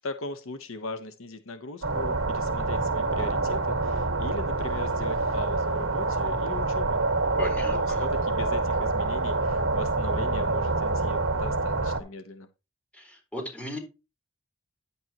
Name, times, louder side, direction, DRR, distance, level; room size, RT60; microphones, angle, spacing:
voice 1, 0.0-7.0 7.6-12.5, left 2 dB, 70° left, 8 dB, 1.0 m, -39 dB
sound 1, 1.8-12.0, right 3 dB, 70° right, 1.8 m, -26 dB
sound 2, 3.8-9.0, left 7 dB, 30° left, 2.5 m, -51 dB
voice 2, 7.4-8.0 12.9-13.8, equal, 5° left, 2 dB, 4.0 m, -36 dB
10.5 x 8.3 x 3.0 m, 0.28 s
head